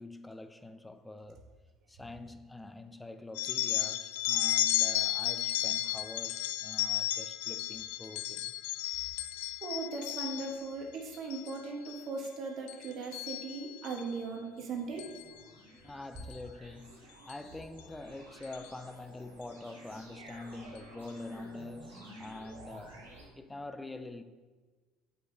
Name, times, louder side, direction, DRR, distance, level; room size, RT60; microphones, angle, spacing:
voice 1, 0.0-1.4 1.9-8.6 15.8-23.0 23.4-24.2, left 2 dB, 10° left, 0.6 m, -45 dB
sound 1, 3.4-10.7 11.1-11.5 11.8-12.3 12.7-14.0 15.0-15.2 16.2-16.3 17.3-17.4 17.8-17.9 18.4-18.7, left 15 dB, 70° left, 0.3 m, -33 dB
voice 2, 9.6-15.0, right 4 dB, 55° right, 1.3 m, -38 dB
sound 2, 14.2-23.2, right 1 dB, 90° right, 2.2 m, -53 dB
8.0 x 5.2 x 3.9 m
hypercardioid pair, 65°, 0 cm